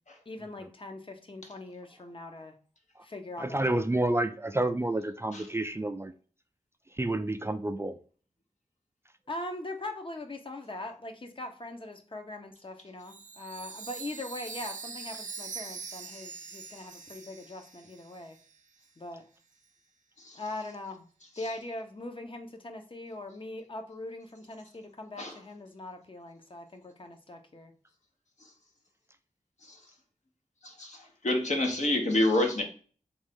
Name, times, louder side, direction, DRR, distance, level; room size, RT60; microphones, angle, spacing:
voice 1, 0.3-2.5 3.0-3.9 9.3-18.4 19.0-19.2 20.3-21.1 21.4-27.7, left 2 dB, 40° left, 5 dB, 0.9 m, -41 dB
voice 2, 3.4-6.1 7.0-8.0, right 1 dB, 20° right, 8 dB, 0.4 m, -29 dB
Chime, 13.0-18.6, right 5 dB, 75° right, 0.5 m, -43 dB
voice 3, 30.6-32.6, left 1 dB, 65° left, 2 dB, 1.1 m, -28 dB
3.5 x 2.5 x 3.5 m, 0.42 s
cardioid pair, 40°, 13 cm